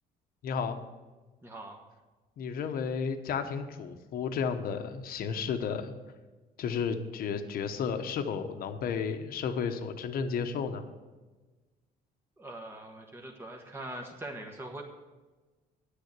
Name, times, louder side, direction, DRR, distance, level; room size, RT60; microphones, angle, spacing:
voice 1, 0.4-0.8 2.4-5.9 6.6-10.8, left 6 dB, 60° left, 7 dB, 1.0 m, -32 dB
voice 2, 1.4-1.8 12.4-14.8, right 1 dB, 15° right, 1 dB, 1.2 m, -42 dB
9.7 x 6.7 x 8.0 m, 1.3 s
cardioid pair, 110°, 17 cm